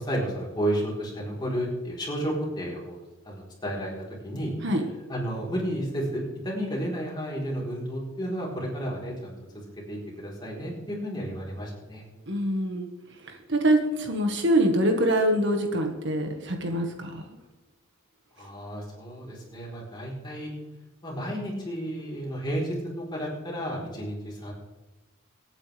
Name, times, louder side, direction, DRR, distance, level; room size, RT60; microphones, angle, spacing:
voice 1, 0.0-3.9 4.2-4.5 5.1-9.3 9.9-12.0 18.4-20.5 21.0-24.5, equal, 20° left, -3 dB, 4.1 m, -32 dB
voice 2, 12.3-12.9 13.2-17.2, right 1 dB, 60° right, 3 dB, 1.7 m, -24 dB
24.5 x 9.1 x 3.5 m, 1.1 s
head